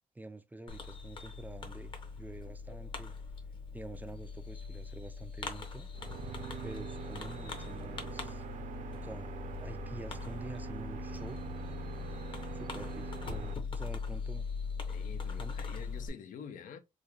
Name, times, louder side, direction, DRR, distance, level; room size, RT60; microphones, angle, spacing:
voice 1, 0.2-3.1 3.7-5.9 6.6-8.4 9.0-9.3 9.6-11.4 12.5-14.5 15.3-15.6, right 2 dB, 10° right, 0.3 m, -47 dB
Fireworks, 0.7-16.1, left 5 dB, 40° left, 0.8 m, -41 dB
sound 1, 5.9-13.5, right 6 dB, 70° right, 0.7 m, -43 dB
voice 2, 14.8-16.8, left 7 dB, 85° left, 0.6 m, -47 dB
3.6 x 2.2 x 3.1 m
cardioid pair, 120°, 14 cm